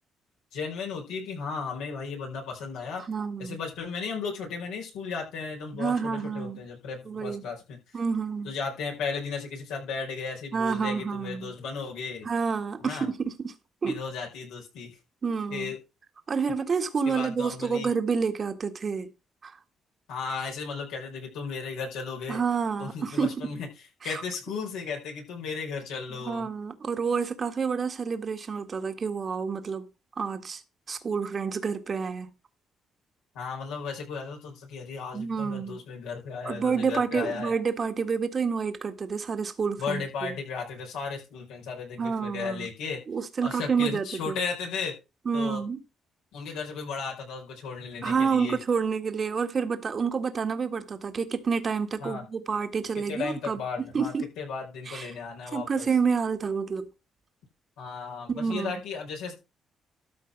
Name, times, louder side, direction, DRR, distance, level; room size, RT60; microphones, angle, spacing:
voice 1, 0.5-3.0 3.4-8.0 8.4-12.3 12.8-13.1 13.9-15.0 15.5-15.8 17.1-17.9 20.1-22.4 22.8-23.7 24.0-26.5 33.3-37.5 39.8-43.0 43.4-44.9 45.3-45.6 46.3-48.6 52.0-52.2 53.1-55.8 57.8-59.3, left 5 dB, 85° left, 5.3 m, -35 dB
voice 2, 3.1-3.6 5.7-6.6 7.0-7.4 7.9-8.5 10.5-11.5 12.2-13.5 13.8-14.0 15.2-15.7 16.3-19.1 19.4-19.6 22.3-23.5 24.0-24.2 26.2-29.9 30.2-30.6 30.9-32.3 35.1-35.8 36.4-40.3 42.0-42.7 43.1-44.3 45.2-45.8 48.0-53.6 53.9-54.3 54.9-55.1 55.5-56.9 58.3-58.8, right 5 dB, 45° right, 1.7 m, -29 dB
13.0 x 4.5 x 6.0 m
supercardioid pair, 65°, 0 cm